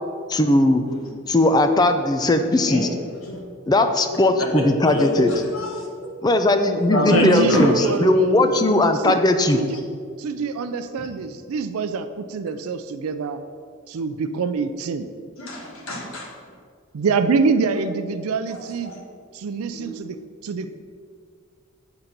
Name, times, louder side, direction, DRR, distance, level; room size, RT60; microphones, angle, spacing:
voice 1, 0.3-0.8 1.3-2.9 3.7-5.3 6.2-9.6, left 2 dB, 20° left, 7 dB, 0.4 m, -18 dB
voice 2, 4.8-5.9 6.7-7.9 15.4-16.3 18.8-19.0 19.7-20.0, left 1 dB, 75° left, 0 dB, 1.4 m, -25 dB
voice 3, 7.1-9.2 9.5-9.9 10.2-13.4 13.9-15.1 16.9-18.9 19.3-20.2 20.4-20.7, right 4 dB, 90° right, 9 dB, 0.4 m, -25 dB
8.0 x 3.8 x 5.8 m, 2.1 s
head